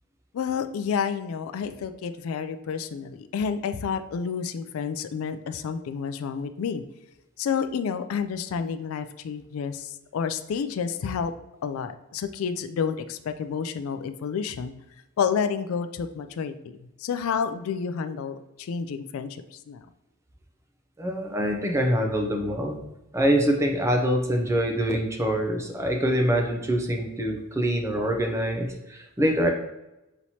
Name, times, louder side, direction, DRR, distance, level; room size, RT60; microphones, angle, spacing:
voice 1, 0.3-6.8 7.4-11.3 11.6-14.7 15.2-19.9, left 6 dB, 70° left, 9 dB, 0.3 m, -30 dB
voice 2, 21.0-22.8 23.1-29.5, equal, 15° right, 3 dB, 0.5 m, -25 dB
5.6 x 3.0 x 2.7 m, 0.95 s
head